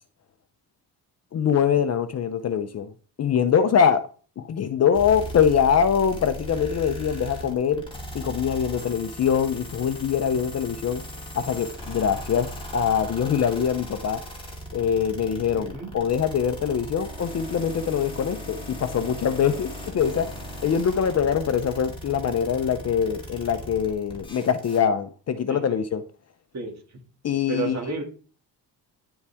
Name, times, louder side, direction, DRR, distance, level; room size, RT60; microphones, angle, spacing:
voice 1, 1.3-2.9 3.2-4.1 4.4-7.9 8.1-11.0 11.4-14.2 14.7-20.3 20.6-26.0 27.2-27.8, left 7 dB, 40° left, 0.6 m, -23 dB
sound 1, 4.9-24.8, equal, 10° left, 2.2 m, -38 dB
voice 2, 27.5-28.0, right 4 dB, 40° right, 2.2 m, -30 dB
9.9 x 7.1 x 3.5 m
cardioid pair, 175°, 42 cm